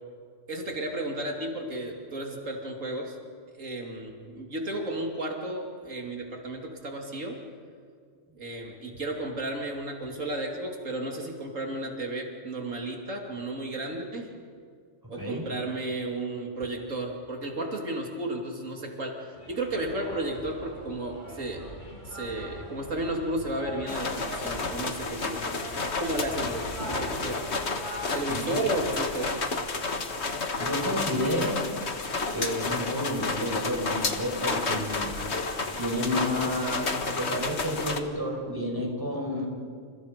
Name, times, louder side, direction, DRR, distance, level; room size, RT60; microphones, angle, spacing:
voice 1, 0.5-3.2 3.5-7.4 8.4-14.3 15.1-21.6 22.0-25.6 26.0-27.4 28.1-29.3, right 1 dB, 90° right, 1 dB, 3.2 m, -33 dB
voice 2, 15.1-15.5 28.3-28.5 30.6-31.7 32.3-35.1 35.8-39.5, equal, 15° right, 0 dB, 5.5 m, -30 dB
sound 1, 19.3-29.0, equal, 40° left, 8.1 m, -41 dB
sound 2, 23.9-38.0, left 3 dB, 60° left, 1.9 m, -31 dB
29.0 x 29.0 x 5.3 m, 2.1 s
omnidirectional pair, 1.3 m